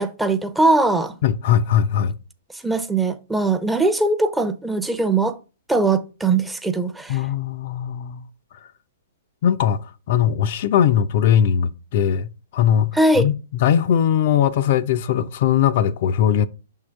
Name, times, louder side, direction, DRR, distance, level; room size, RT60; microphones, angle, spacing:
voice 1, 0.0-1.1 2.6-5.4 5.7-7.2 12.9-13.3, right 2 dB, 5° right, 0.5 m, -20 dB
voice 2, 1.2-2.1 7.1-8.2 9.4-13.3 13.6-16.5, left 9 dB, 50° left, 0.4 m, -20 dB
6.0 x 3.7 x 4.4 m
hypercardioid pair, 120°, 0 cm